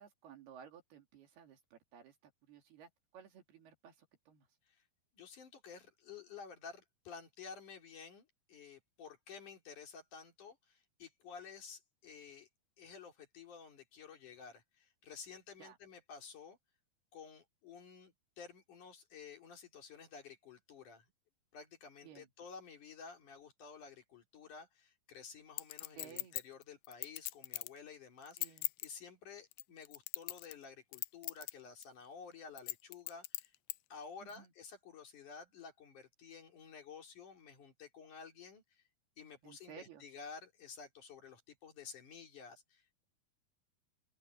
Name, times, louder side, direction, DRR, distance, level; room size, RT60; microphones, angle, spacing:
voice 1, 0.0-4.5 15.6-15.8 22.0-22.3 26.0-26.4 28.4-28.7 34.2-34.5 39.4-40.0, right 8 dB, 80° right, 4.5 m, -56 dB
voice 2, 5.1-12.5 12.8-16.6 17.1-21.1 21.5-33.5 33.9-38.8 39.2-43.0, left 6 dB, 55° left, 4.4 m, -52 dB
Chink clink, 25.6-27.8 28.2-28.9 29.5-30.6 30.9-31.5 31.8-31.9 32.6-33.8 34.3-34.4, left 20 dB, 80° left, 2.3 m, -40 dB
omnidirectional pair, 4.5 m